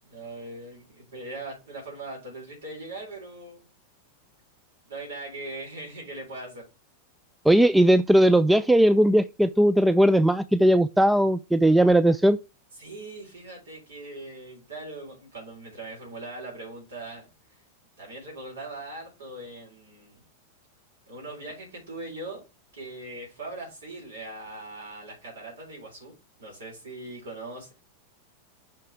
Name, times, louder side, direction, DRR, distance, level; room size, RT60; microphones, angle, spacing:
voice 1, 0.0-3.7 4.9-6.6 12.8-17.3 18.0-20.2 21.1-22.4 22.7-26.1 26.4-27.7, right 2 dB, 65° right, 3.8 m, -40 dB
voice 2, 7.5-12.4, right 1 dB, 5° right, 0.3 m, -19 dB
5.9 x 4.7 x 4.9 m
figure-of-eight pair, 90°, 0 cm